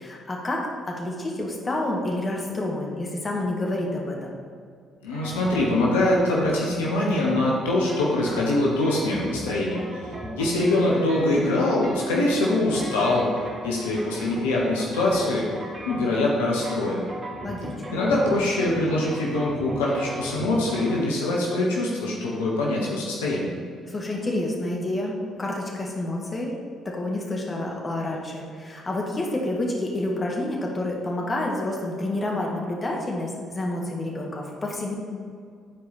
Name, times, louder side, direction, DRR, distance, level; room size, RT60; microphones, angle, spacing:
voice 1, 0.0-4.4 17.4-18.0 23.9-26.5 26.9-34.9, left 1 dB, 30° left, -1 dB, 1.8 m, -29 dB
voice 2, 5.0-9.8 10.4-13.3 13.6-15.5 15.9-17.0 17.9-23.5, left 2 dB, 80° left, -4 dB, 1.0 m, -23 dB
sound 1, 5.1-21.0, right 1 dB, 35° right, 1.5 m, -37 dB
9.9 x 4.7 x 4.2 m, 2.2 s
hypercardioid pair, 45°, 0 cm